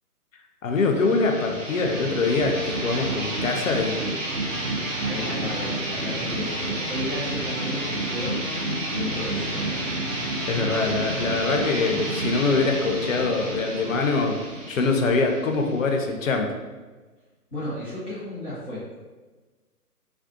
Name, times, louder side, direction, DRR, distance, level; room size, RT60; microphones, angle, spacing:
voice 1, 0.6-4.0 10.3-14.4 14.7-16.5, left 3 dB, 60° left, 3 dB, 0.5 m, -24 dB
sound 1, 0.8-16.2, right 1 dB, 55° right, 0.7 m, -30 dB
voice 2, 5.0-8.4 8.9-9.7 17.5-18.8, left 1 dB, 10° left, -14 dB, 0.5 m, -34 dB
2.5 x 2.1 x 2.6 m, 1.3 s
figure-of-eight pair, 135°, 46 cm